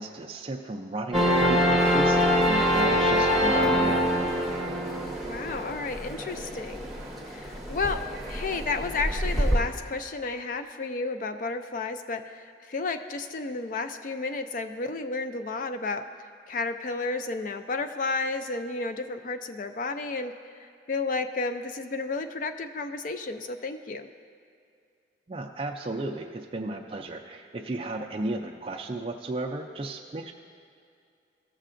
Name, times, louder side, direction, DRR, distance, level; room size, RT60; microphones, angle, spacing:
voice 1, 0.0-4.1 25.3-30.3, right 2 dB, 30° right, 2 dB, 0.3 m, -34 dB
sound 1, 1.1-9.6, equal, ahead, 0.9 m, -25 dB
voice 2, 5.2-6.9 7.3-8.0 8.3-16.0 16.5-24.1, left 3 dB, 45° left, 8 dB, 0.4 m, -32 dB
14.5 x 6.5 x 2.5 m, 2.4 s
head